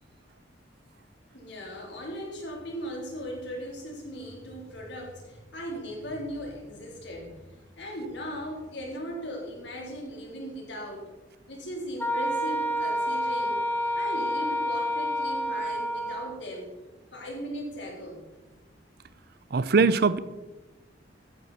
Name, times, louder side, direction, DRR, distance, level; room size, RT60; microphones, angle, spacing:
voice 1, 1.3-11.1 11.5-16.7 17.1-18.3, equal, 70° left, -1 dB, 3.6 m, -38 dB
Wind instrument woodwind instrument, 12.0-16.4, equal, 10° left, 1.1 m, -28 dB
voice 2, 19.5-20.2, right 4 dB, 60° right, 16 dB, 0.5 m, -21 dB
14.0 x 9.7 x 4.3 m, 1.1 s
head